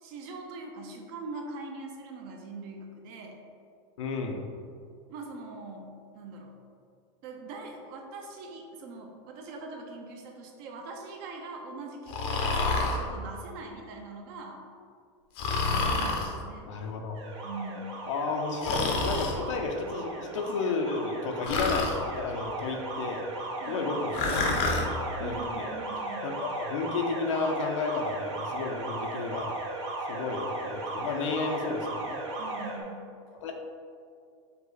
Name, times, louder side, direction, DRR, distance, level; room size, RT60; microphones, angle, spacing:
voice 1, 0.0-3.4 5.1-6.6 7.2-14.6 15.7-16.7 17.4-18.0 23.6-23.9 25.2-26.3 32.4-33.0, right 3 dB, 50° right, 2 dB, 0.7 m, -42 dB
voice 2, 4.0-4.4 16.7-17.2 18.1-23.3 23.7-24.7 25.2-25.7 26.2-29.5 30.1-32.2 33.4-33.5, left 4 dB, 90° left, 3 dB, 0.7 m, -32 dB
Breathing, 12.1-13.0 15.4-16.3 18.6-19.4 21.5-22.0 24.1-24.9, left 3 dB, 40° left, 0.6 m, -28 dB
Alarm, 17.1-32.8, right 2 dB, 80° right, 1.0 m, -36 dB
5.4 x 2.2 x 3.9 m, 2.3 s
supercardioid pair, 155°, 15 cm